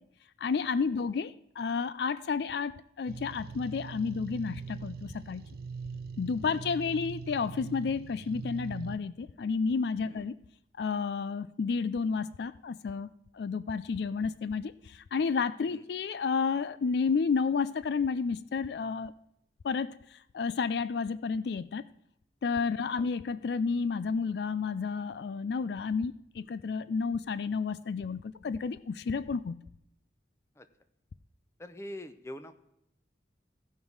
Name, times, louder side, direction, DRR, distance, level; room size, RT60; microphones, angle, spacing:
voice 1, 0.4-5.5 6.2-10.3 10.8-13.1 13.3-19.1 19.6-20.0 20.3-21.8 22.4-29.6, left 5 dB, 65° left, 16 dB, 0.4 m, -31 dB
sound 1, 3.1-9.0, right 5 dB, 55° right, 0.4 m, -42 dB
voice 2, 31.6-32.5, left 1 dB, 15° left, 9 dB, 0.7 m, -44 dB
16.0 x 5.4 x 4.7 m, 0.80 s
head